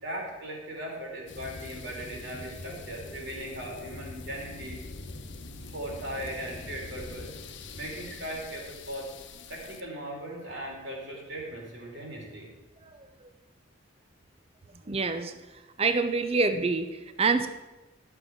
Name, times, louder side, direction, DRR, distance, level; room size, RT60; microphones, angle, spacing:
voice 1, 0.0-4.8 5.6-7.3 7.8-9.1 9.5-12.5, right 1 dB, 60° right, -2 dB, 3.6 m, -38 dB
sound 1, 1.3-9.8, left 3 dB, 65° left, 0.9 m, -43 dB
voice 2, 12.8-13.3 14.9-15.4 15.8-17.5, right 4 dB, 30° right, 10 dB, 0.5 m, -27 dB
12.0 x 6.7 x 6.0 m, 1.1 s
head